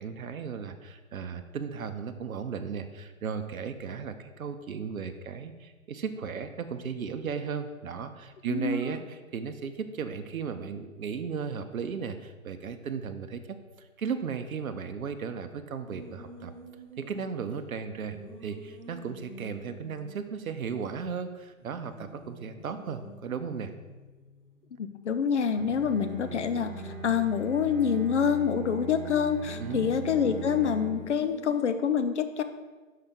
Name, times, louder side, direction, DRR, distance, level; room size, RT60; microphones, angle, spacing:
voice 1, 0.0-13.4 13.8-16.5 17.0-23.7 29.6-29.9, right 6 dB, 75° right, 8 dB, 0.6 m, -35 dB
voice 2, 8.5-9.0 24.7-32.4, left 7 dB, 60° left, 10 dB, 0.5 m, -27 dB
sound 1, 15.9-17.5 18.1-21.0 21.2-21.3 21.6-25.0 25.6-28.3 29.4-31.6, right 1 dB, 10° left, 1.2 m, -49 dB
Bowed string instrument, 25.5-31.2, right 2 dB, 35° right, 0.6 m, -40 dB
5.6 x 3.4 x 5.4 m, 1.3 s
figure-of-eight pair, 140°, 41 cm